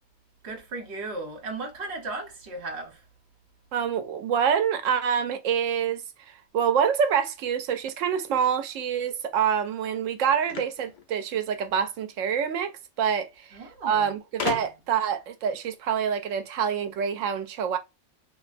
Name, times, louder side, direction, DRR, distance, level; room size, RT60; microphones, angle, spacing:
voice 1, 0.4-3.0 13.5-14.1, right 3 dB, 60° right, 1.3 m, -36 dB
voice 2, 3.7-12.7 13.0-17.8, right 7 dB, 80° right, 1.0 m, -26 dB
sound 1, 10.5-11.9 13.0-13.1 13.3-13.4 14.4-15.0, left 5 dB, 50° left, 0.6 m, -34 dB
2.9 x 2.6 x 2.4 m
omnidirectional pair, 1.3 m